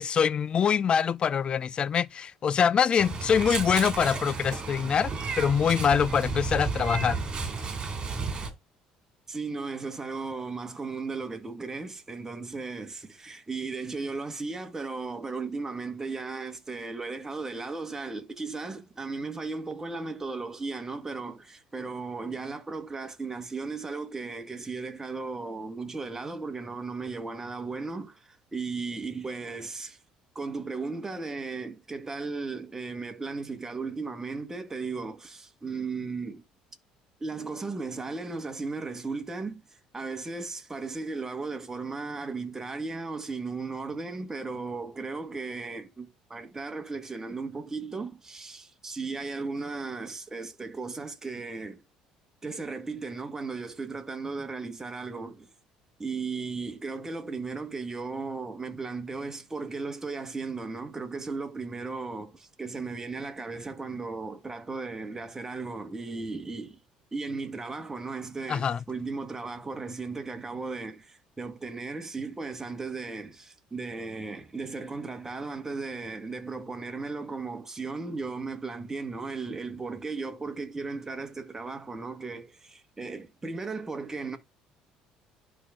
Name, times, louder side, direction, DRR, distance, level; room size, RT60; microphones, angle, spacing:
voice 1, 0.0-7.2 68.5-68.8, left 7 dB, 40° left, 0.5 m, -24 dB
Meow, 3.0-8.5, right 4 dB, 35° right, 3.3 m, -32 dB
voice 2, 9.3-30.0 30.4-36.4 37.2-39.6 39.9-51.8 52.4-55.5 56.0-66.8 67.1-84.4, right 4 dB, 20° right, 1.8 m, -36 dB
11.0 x 3.9 x 3.8 m
supercardioid pair, 75°, 2 cm